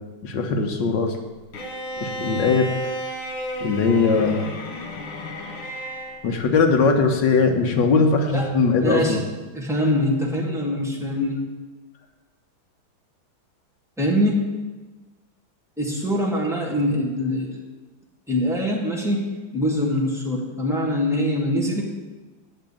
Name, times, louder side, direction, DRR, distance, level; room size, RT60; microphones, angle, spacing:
voice 1, 0.2-1.2 2.0-2.9 3.6-4.5 6.2-9.2, left 4 dB, 60° left, 4 dB, 1.6 m, -20 dB
Bowed string instrument, 1.5-6.2, right 1 dB, 90° left, 2.6 m, -32 dB
voice 2, 8.8-9.2 9.5-11.4 14.0-14.5 15.8-17.5 18.3-19.2 19.5-21.8, left 1 dB, ahead, -4 dB, 1.7 m, -23 dB
7.8 x 7.3 x 8.5 m, 1.2 s
omnidirectional pair, 2.3 m